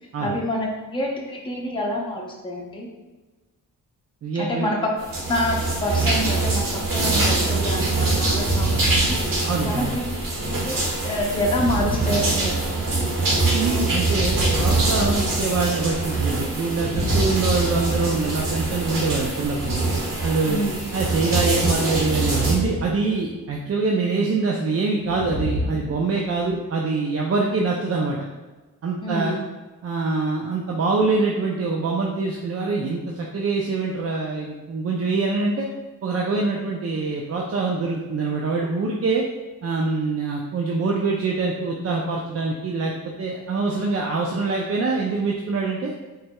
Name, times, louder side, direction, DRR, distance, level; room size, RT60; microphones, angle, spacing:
voice 1, 0.2-2.9 4.3-4.8 5.3-9.2 9.6-10.0 10.5-13.2 20.5-20.8 29.0-29.4, equal, 15° left, -2 dB, 0.7 m, -27 dB
voice 2, 4.2-4.7 9.5-10.0 13.5-19.9 20.2-20.6 20.9-28.2 28.8-29.4 29.8-35.7 36.0-39.2 39.6-42.9 43.2-45.9, right 3 dB, 45° right, -1 dB, 0.5 m, -24 dB
sound 1, 5.0-22.5, right 3 dB, 65° right, 1.3 m, -24 dB
sound 2, 8.3-9.9 11.3-12.8 13.7-15.9 16.6-18.2 19.3-20.1 22.1-23.0 23.3-23.6 25.0-26.5, equal, 10° right, 0.9 m, -30 dB
4.5 x 3.2 x 2.2 m, 1.2 s
cardioid pair, 95°, 35 cm